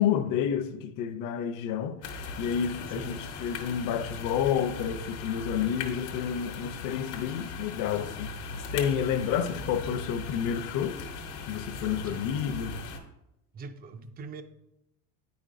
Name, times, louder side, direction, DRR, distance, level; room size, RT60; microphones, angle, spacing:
voice 1, 0.0-11.0 11.5-12.8, left 8 dB, 60° left, 0.6 m, -30 dB
sound 1, 2.0-13.0, left 4 dB, 85° left, 1.0 m, -39 dB
voice 2, 12.0-12.4 13.5-14.4, right 4 dB, 25° right, 0.4 m, -42 dB
8.6 x 5.2 x 2.5 m
cardioid pair, 125°, 36 cm